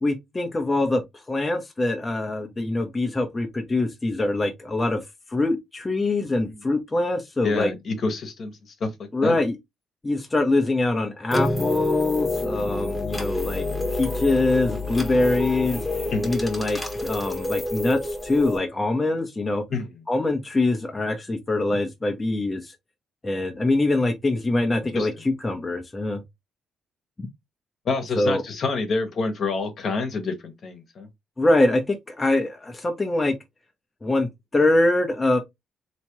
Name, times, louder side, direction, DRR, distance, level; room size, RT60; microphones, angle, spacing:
voice 1, 0.0-5.0 5.3-7.7 9.1-9.6 10.0-13.7 13.9-15.8 16.2-19.6 20.1-22.7 23.2-25.1 25.4-26.2 27.2-27.3 28.2-28.4 31.4-33.3 34.0-35.4, left 2 dB, 20° left, 0.8 m, -24 dB
voice 2, 7.4-9.4 16.1-16.3 19.7-19.9 24.9-25.1 27.8-31.1, left 3 dB, 55° left, 1.1 m, -27 dB
sound 1, 11.3-18.6, left 1 dB, 5° left, 1.1 m, -28 dB
3.4 x 2.9 x 3.0 m
cardioid pair, 90°, 0 cm